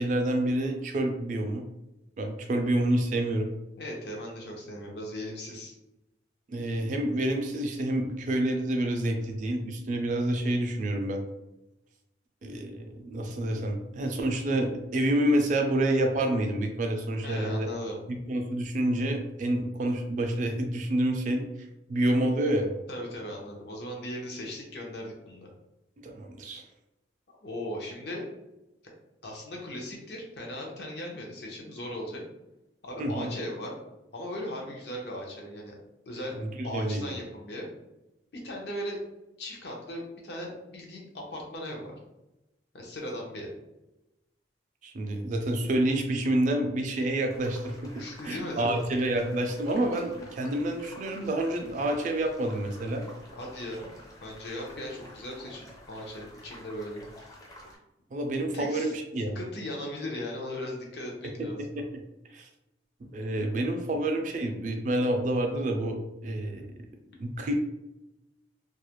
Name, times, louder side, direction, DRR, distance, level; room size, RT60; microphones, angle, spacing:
voice 1, 0.0-1.6 2.2-3.5 6.5-11.2 12.4-17.7 18.1-21.5 21.9-22.7 26.0-26.6 33.0-33.3 36.3-37.1 44.8-53.0 58.1-59.4 61.4-62.0 62.3-62.5 63.1-66.7 67.2-67.5, right 1 dB, 45° right, 3 dB, 0.3 m, -28 dB
voice 2, 3.8-5.7 17.2-18.0 22.9-25.5 27.4-28.3 29.2-32.2 32.8-33.7 34.1-35.7 36.1-36.4 36.6-37.7 38.4-39.0 39.4-41.9 42.7-43.5 48.0-48.9 53.3-53.9 54.2-57.1 58.5-58.9 59.3-61.6, left 1 dB, 65° left, -1 dB, 0.6 m, -38 dB
sound 1, 47.3-57.8, left 1 dB, 20° left, 0.5 m, -50 dB
2.3 x 2.1 x 2.9 m, 0.95 s
head